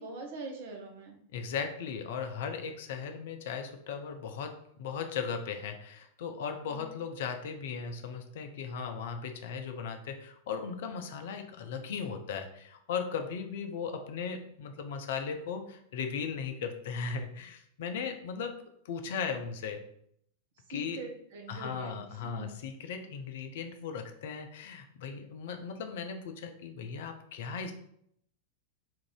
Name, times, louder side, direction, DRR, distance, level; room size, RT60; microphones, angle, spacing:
voice 1, 0.0-1.2 6.6-6.9 20.7-22.5, right 3 dB, 55° right, 2 dB, 0.8 m, -43 dB
voice 2, 1.3-18.5 18.8-19.8 20.7-21.0 21.5-27.7, left 6 dB, 55° left, 6 dB, 0.5 m, -37 dB
3.7 x 2.6 x 4.6 m, 0.70 s
figure-of-eight pair, 90°, 0 cm